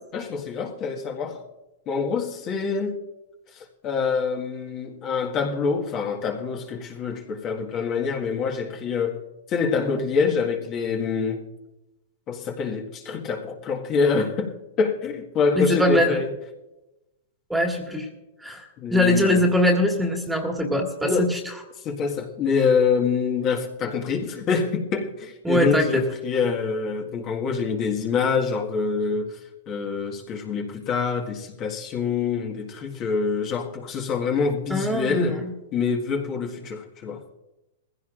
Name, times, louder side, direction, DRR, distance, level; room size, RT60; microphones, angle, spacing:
voice 1, 0.1-1.4 1.8-3.0 3.5-9.2 9.5-11.4 12.3-16.3 18.8-19.5 21.0-21.3 21.8-29.4 29.7-35.4 35.7-37.2, left 5 dB, 35° left, 1.7 m, -26 dB
voice 2, 15.6-16.2 17.5-18.1 18.4-21.4 25.4-26.0 34.7-35.5, left 1 dB, 5° right, 2.0 m, -22 dB
20.0 x 15.5 x 2.5 m
hypercardioid pair, 120°, 0 cm